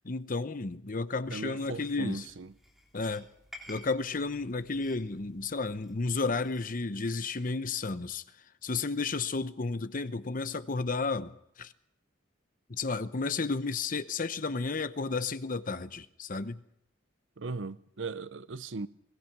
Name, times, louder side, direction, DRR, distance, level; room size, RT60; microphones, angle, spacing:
voice 1, 0.0-2.3 2.9-3.3 3.7-8.2 8.6-11.7 12.7-16.6, left 3 dB, 45° left, 0.9 m, -32 dB
voice 2, 1.3-2.5 17.4-18.9, right 3 dB, 75° right, 0.7 m, -38 dB
sound 1, 1.6-6.9, left 1 dB, ahead, 3.5 m, -54 dB
22.0 x 20.0 x 6.1 m
head